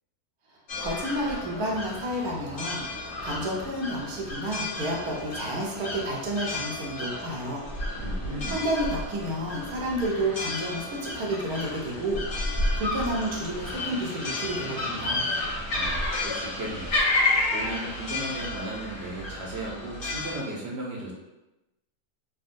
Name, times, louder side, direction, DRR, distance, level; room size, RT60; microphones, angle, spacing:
sound 1, 0.7-20.4, left 2 dB, 50° left, 0.7 m, -31 dB
voice 1, 0.8-7.6 8.5-12.2 12.5-15.2, right 1 dB, 85° right, -3 dB, 1.2 m, -31 dB
voice 2, 8.0-8.7 15.7-17.0 17.5-21.1, right 1 dB, 55° right, -4 dB, 0.8 m, -36 dB
sound 2, 11.6-18.4, left 1 dB, 65° left, 1.1 m, -45 dB
3.5 x 2.1 x 2.5 m, 0.99 s
omnidirectional pair, 1.6 m